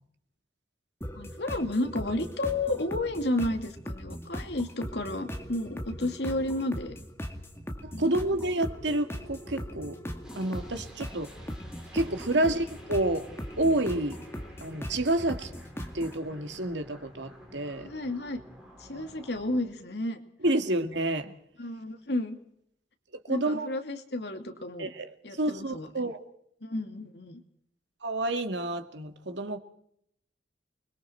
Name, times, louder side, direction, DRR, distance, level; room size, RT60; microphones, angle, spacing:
sound 1, 1.0-16.2, equal, 15° left, 2.2 m, -39 dB
voice 1, 1.2-7.0 7.9-8.2 12.3-12.4 17.8-18.4 18.8-20.2 21.6-22.4 23.3-24.9 25.2-25.9 26.6-27.4, left 1 dB, 70° left, 6 dB, 2.5 m, -32 dB
voice 2, 7.8-10.0 10.4-11.3 11.9-13.3 13.6-14.2 14.6-15.5 15.9-17.9 18.9-19.1 20.4-21.3 23.2-23.7 24.8-26.2 28.0-29.6, right 1 dB, 85° right, 7 dB, 2.1 m, -29 dB
sound 2, 10.2-19.6, equal, 5° right, 5.1 m, -50 dB
29.0 x 21.5 x 4.5 m, 0.71 s
head